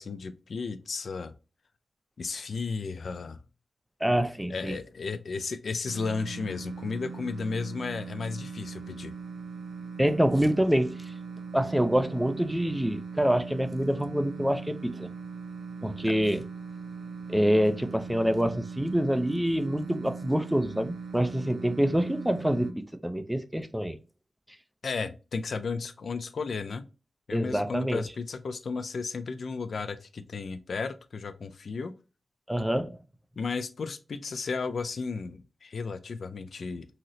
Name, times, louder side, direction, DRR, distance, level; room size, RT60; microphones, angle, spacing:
voice 1, 0.0-1.3 2.2-3.4 4.5-9.1 16.0-16.1 24.8-26.8 27.3-31.9 33.4-36.9, left 4 dB, 70° left, 0.3 m, -34 dB
voice 2, 4.0-4.8 10.0-11.1 11.5-15.1 15.8-16.4 17.3-24.0 27.3-28.0 32.5-33.0, equal, 5° right, 0.4 m, -26 dB
sound 1, 5.8-22.7, right 5 dB, 90° right, 0.5 m, -40 dB
3.8 x 2.0 x 2.7 m
wide cardioid pair, 90°, 0 cm